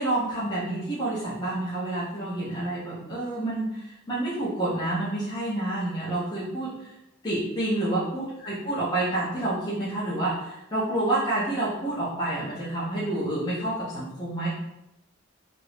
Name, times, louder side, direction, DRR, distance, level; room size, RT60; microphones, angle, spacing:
voice 1, 0.0-6.9 7.2-14.5, right 1 dB, 20° left, -9 dB, 0.7 m, -28 dB
2.9 x 2.5 x 3.3 m, 0.89 s
head